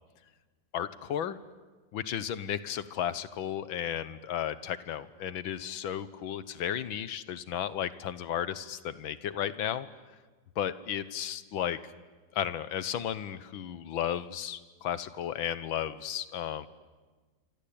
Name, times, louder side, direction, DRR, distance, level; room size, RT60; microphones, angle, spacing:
voice 1, 0.7-1.4 1.9-9.9 10.6-11.8 12.3-16.7, left 10 dB, 90° left, 14 dB, 1.8 m, -34 dB
27.0 x 25.0 x 8.7 m, 1.3 s
omnidirectional pair, 2.1 m